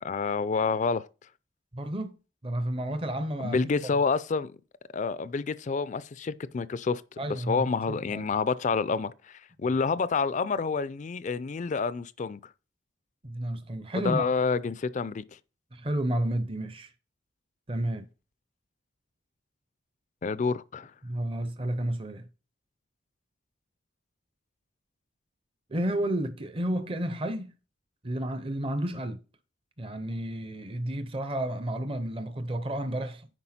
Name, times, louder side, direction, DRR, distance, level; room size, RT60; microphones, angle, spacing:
voice 1, 0.0-1.0 3.4-4.5 4.9-7.0 7.3-12.4 13.9-15.2 20.2-20.9, left 4 dB, 40° left, 0.4 m, -28 dB
voice 2, 1.7-2.2 2.4-3.6 7.2-8.3 9.6-9.8 13.2-14.2 15.7-16.9 17.7-18.1 21.0-22.3 25.7-27.5 28.0-29.2 29.8-33.3, right 1 dB, 30° right, 0.6 m, -31 dB
9.8 x 4.5 x 4.2 m
head